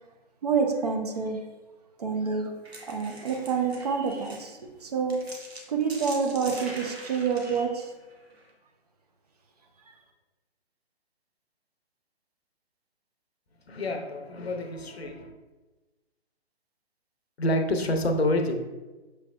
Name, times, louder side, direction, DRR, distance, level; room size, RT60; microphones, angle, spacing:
voice 1, 0.4-1.4 2.0-2.5 2.9-5.2 5.7-7.9, right 5 dB, 40° right, 2 dB, 0.6 m, -28 dB
sound 1, 2.5-8.5, right 2 dB, 70° right, 1.0 m, -43 dB
voice 2, 13.7-15.3 17.4-18.6, left 1 dB, 70° left, 5 dB, 0.7 m, -27 dB
6.2 x 3.2 x 2.4 m, 1.2 s
figure-of-eight pair, 130°, 32 cm